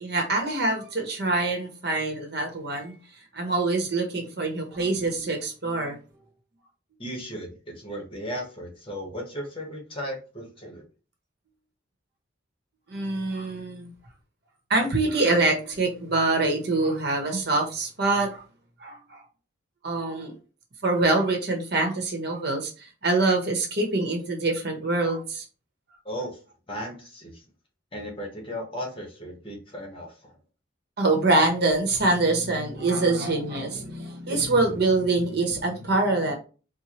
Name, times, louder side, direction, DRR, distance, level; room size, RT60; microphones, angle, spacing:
voice 1, 0.0-2.9 3.3-6.0 12.9-13.9 14.7-18.4 18.8-19.2 19.8-20.4 20.8-25.4 31.0-36.3, right 2 dB, 55° right, 2 dB, 1.0 m, -25 dB
voice 2, 7.0-10.8 26.0-26.3 26.7-27.5 27.9-30.3, equal, 30° left, 0 dB, 1.2 m, -36 dB
4.3 x 2.2 x 3.0 m, 0.34 s
head